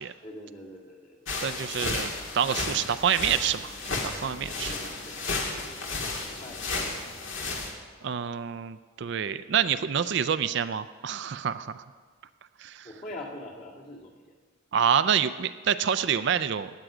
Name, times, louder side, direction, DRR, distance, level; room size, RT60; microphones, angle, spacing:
voice 1, 0.2-1.6 4.4-5.9 6.2-7.1 12.8-14.4, left 1 dB, 40° left, -3 dB, 2.0 m, -44 dB
sound 1, 1.3-7.7, left 3 dB, 65° left, 1.8 m, -33 dB
voice 2, 1.4-3.7 4.0-4.8 8.0-11.8 12.6-12.9 14.7-16.7, right 8 dB, 55° right, 13 dB, 0.4 m, -27 dB
16.0 x 10.0 x 4.9 m, 1.5 s
head